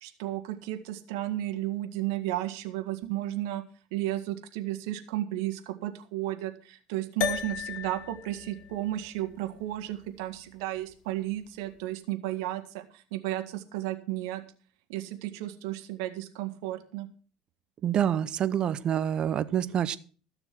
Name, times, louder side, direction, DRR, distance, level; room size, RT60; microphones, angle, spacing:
voice 1, 0.0-3.6 3.9-14.4 14.9-17.1, right 14 dB, 90° right, 8 dB, 1.7 m, -33 dB
sound 1, 7.2-11.8, left 9 dB, 70° left, 1.3 m, -38 dB
voice 2, 17.8-20.0, right 9 dB, 45° right, 15 dB, 0.9 m, -27 dB
14.5 x 6.9 x 6.0 m, 0.40 s
supercardioid pair, 110°, 2 cm